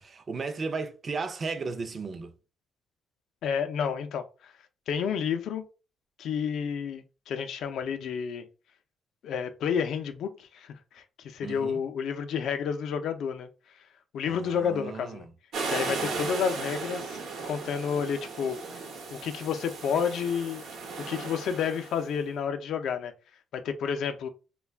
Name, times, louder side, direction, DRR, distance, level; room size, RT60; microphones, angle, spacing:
voice 1, 0.0-2.3 11.4-11.8 14.2-15.3 15.9-16.3, right 4 dB, 40° right, 0.4 m, -35 dB
voice 2, 3.4-4.5 4.9-5.6 6.2-8.4 9.2-13.5 14.1-15.2 15.6-17.2 17.4-18.6 19.1-20.6 21.1-23.1 23.5-24.3, left 7 dB, 75° left, 0.4 m, -30 dB
sound 1, 15.5-22.1, right 4 dB, 75° right, 0.8 m, -36 dB
2.3 x 2.2 x 3.3 m
cardioid pair, 90°, 0 cm